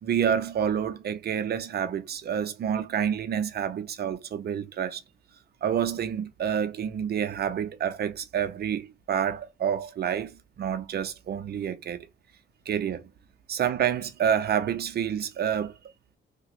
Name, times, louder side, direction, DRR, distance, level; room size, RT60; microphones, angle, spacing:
voice 1, 0.0-5.0 5.6-12.1 12.7-13.0 13.5-15.7, right 8 dB, 55° right, 0.7 m, -28 dB
2.9 x 2.3 x 4.2 m
cardioid pair, 90°, 20 cm